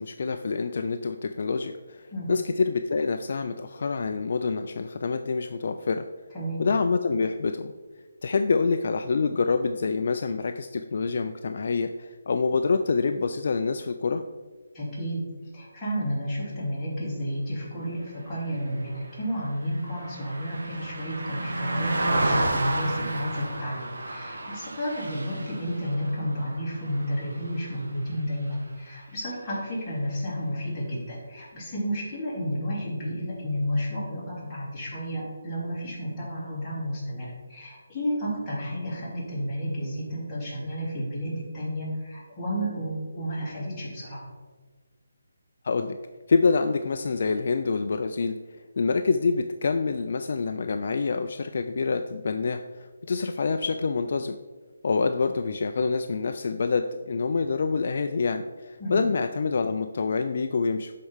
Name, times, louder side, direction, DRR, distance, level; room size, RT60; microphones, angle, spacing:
voice 1, 0.0-6.1 6.6-7.7 8.2-14.2 45.6-46.0 46.3-48.4 48.8-54.4 54.8-60.9, left 4 dB, 50° left, 7 dB, 0.3 m, -26 dB
voice 2, 14.7-15.2 15.5-44.2 58.8-59.0, equal, 10° left, -10 dB, 2.6 m, -31 dB
Car passing by, 18.5-28.1 28.5-28.7, right 2 dB, 75° right, 1.4 m, -31 dB
11.5 x 4.7 x 3.6 m, 1.4 s
hypercardioid pair, 170°, 0 cm